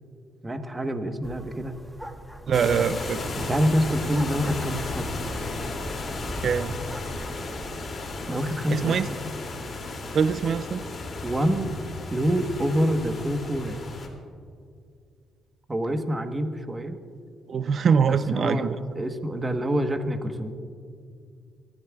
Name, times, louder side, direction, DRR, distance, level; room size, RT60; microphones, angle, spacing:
voice 1, 0.4-1.7 3.4-5.1 8.3-9.0 11.2-11.8 12.1-13.8 15.7-17.0 18.0-20.5, equal, 20° right, 6 dB, 1.2 m, -26 dB
sound 1, 1.2-7.3, equal, ahead, 1.0 m, -40 dB
sound 2, 2.5-14.1, left 2 dB, 40° left, 2.6 m, -34 dB
voice 2, 2.5-3.2 6.4-6.7 8.7-9.1 10.1-10.8 17.5-18.7, right 6 dB, 55° right, 13 dB, 0.5 m, -23 dB
29.5 x 13.5 x 2.4 m, 2.2 s
cardioid pair, 90°, 0 cm